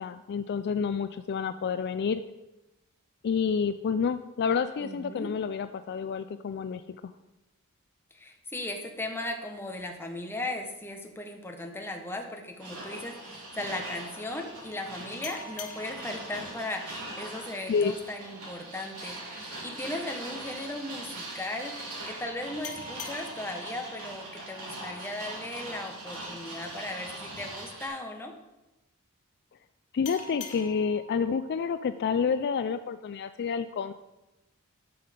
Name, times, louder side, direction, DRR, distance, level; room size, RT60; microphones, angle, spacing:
voice 1, 0.0-2.2 3.2-7.1 17.7-17.9 29.9-33.9, left 6 dB, 50° left, 11 dB, 0.3 m, -29 dB
voice 2, 4.8-5.3 8.1-28.3, left 1 dB, 10° left, 3 dB, 1.1 m, -37 dB
sound 1, 12.6-27.9, right 1 dB, 70° right, 3.0 m, -41 dB
sound 2, 15.2-18.5 22.6-25.9 30.0-33.0, left 3 dB, 85° left, 1.3 m, -46 dB
12.0 x 5.6 x 5.1 m, 0.99 s
head